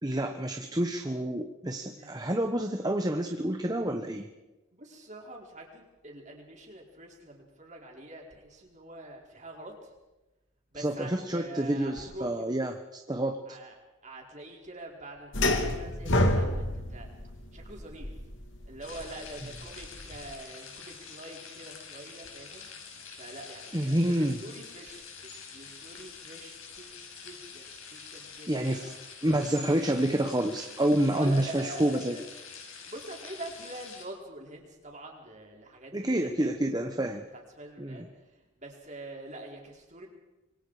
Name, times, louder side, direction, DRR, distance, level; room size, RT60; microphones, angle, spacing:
voice 1, 0.0-4.3 10.7-13.6 23.7-24.4 28.5-28.9 29.2-32.2 35.9-37.2 37.8-38.1, right 1 dB, 20° right, 5 dB, 1.1 m, -28 dB
voice 2, 4.7-9.9 10.7-12.6 13.5-13.8 14.0-17.1 17.5-18.1 18.6-22.7 23.2-25.1 25.5-27.0 27.2-28.5 28.7-28.9 31.1-32.2 32.9-36.6 37.3-40.1, right 1 dB, 35° right, 0 dB, 4.7 m, -45 dB
sound 1, 15.3-20.3, left 1 dB, 60° left, 2.5 m, -28 dB
sound 2, 18.8-34.1, left 5 dB, 80° left, 5.5 m, -46 dB
26.5 x 23.5 x 5.0 m, 1.0 s
head